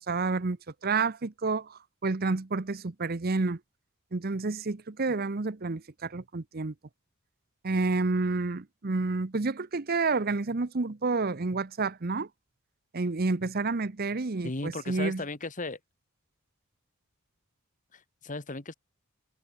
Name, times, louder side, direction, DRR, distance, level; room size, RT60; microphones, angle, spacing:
voice 1, 0.1-0.6 0.8-3.6 4.1-6.7 7.6-12.3 12.9-15.2, right 3 dB, 45° right, 0.8 m, -29 dB
voice 2, 14.4-15.8 17.9-18.7, left 2 dB, 35° left, 1.6 m, -36 dB
head